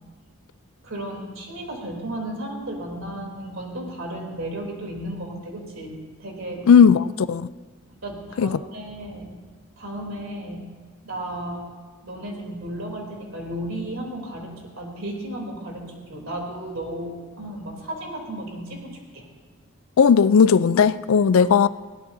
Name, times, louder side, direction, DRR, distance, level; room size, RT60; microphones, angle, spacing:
voice 1, 0.8-5.9 6.2-6.7 8.0-9.3 9.8-10.7 11.0-11.6 12.0-14.5 14.8-15.8 16.1-19.2, right 1 dB, 75° right, 0 dB, 3.2 m, -34 dB
voice 2, 6.7-7.5 8.4-8.6 20.0-21.7, left 6 dB, 80° left, 16 dB, 0.4 m, -16 dB
21.5 x 16.5 x 2.7 m, 1.5 s
head